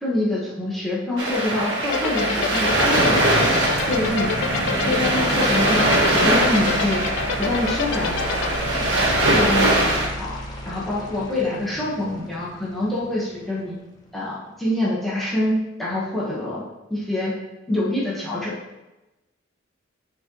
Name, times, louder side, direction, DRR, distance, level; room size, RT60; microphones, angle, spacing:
voice 1, 0.0-3.2 3.9-4.4 4.8-7.1 7.4-8.5 8.8-10.4 10.6-13.7 14.1-16.6 16.9-17.4 17.7-18.5, left 1 dB, ahead, -8 dB, 1.2 m, -26 dB
sound 1, 1.2-10.1, right 1 dB, 75° right, 1.3 m, -21 dB
sound 2, 1.8-13.8, left 1 dB, 20° left, 0.9 m, -33 dB
sound 3, 1.9-8.6, left 7 dB, 65° left, 0.4 m, -27 dB
9.2 x 3.8 x 3.0 m, 1.0 s
head